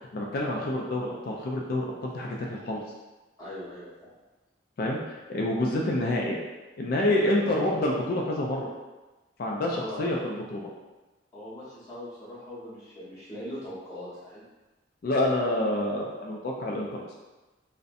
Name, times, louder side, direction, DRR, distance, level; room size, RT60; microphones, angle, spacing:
voice 1, 0.1-2.8 4.8-6.4 6.8-8.7 9.4-10.7 15.0-17.1, left 1 dB, 50° left, -1 dB, 0.3 m, -28 dB
voice 2, 3.4-4.1 7.4-7.7 9.7-10.2 11.3-14.4, left 1 dB, 20° left, -11 dB, 0.8 m, -40 dB
2.6 x 2.1 x 2.5 m, 1.1 s
head